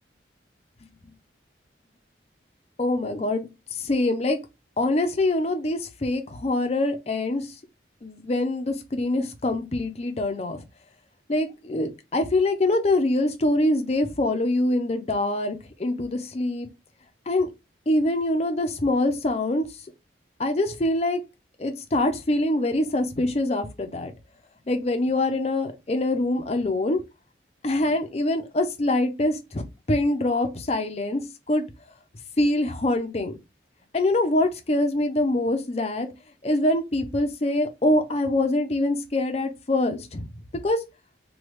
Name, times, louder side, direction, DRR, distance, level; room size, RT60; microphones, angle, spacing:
voice 1, 2.8-3.5 3.7-4.4 4.8-7.5 8.0-10.6 11.3-16.7 17.3-17.5 17.9-19.6 20.4-21.2 21.6-24.1 24.7-27.0 27.6-31.2 31.5-31.7 32.4-33.4 33.9-36.1 36.4-40.3 40.6-40.8, left 1 dB, 35° left, 0.5 m, -24 dB
3.2 x 2.3 x 3.0 m
head